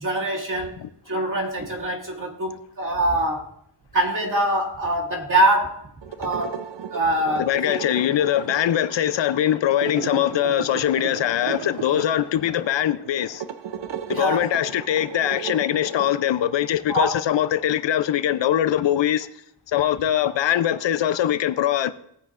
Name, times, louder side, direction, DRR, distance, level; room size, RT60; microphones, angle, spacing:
voice 1, 0.0-0.8 1.1-3.5 3.9-5.9 6.2-7.8 14.1-14.5 16.9-17.2, right 1 dB, 45° right, 2.3 m, -24 dB
sound 1, 6.0-16.8, right 7 dB, 80° right, 0.8 m, -35 dB
voice 2, 7.4-13.4 14.1-19.3 19.7-21.9, left 11 dB, 75° left, 0.6 m, -22 dB
17.0 x 9.3 x 2.5 m
wide cardioid pair, 105°, 44 cm